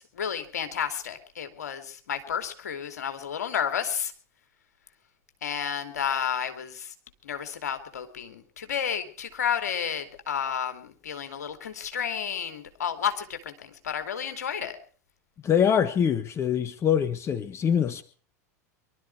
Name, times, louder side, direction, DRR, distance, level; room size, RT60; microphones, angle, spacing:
voice 1, 0.0-4.1 5.4-6.9 7.2-14.8, left 8 dB, 75° left, 8 dB, 2.6 m, -31 dB
voice 2, 15.4-18.0, left 8 dB, 30° left, 13 dB, 1.3 m, -24 dB
24.0 x 12.5 x 4.6 m, 0.42 s
figure-of-eight pair, 80°, 9 cm